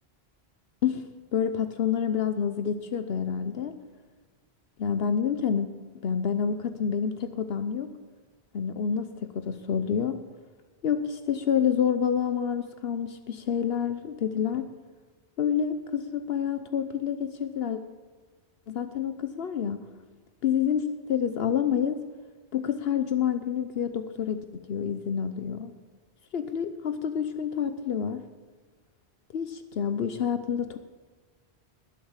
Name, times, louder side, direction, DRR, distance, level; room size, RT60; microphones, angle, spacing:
voice 1, 1.3-3.8 4.8-5.7 6.0-7.9 8.5-10.2 10.8-14.7 15.4-17.8 18.7-19.8 20.4-22.0 22.5-25.7 26.3-28.2 29.3-30.8, left 8 dB, 70° left, 9 dB, 1.0 m, -28 dB
20.5 x 8.4 x 7.3 m, 1.4 s
omnidirectional pair, 1.1 m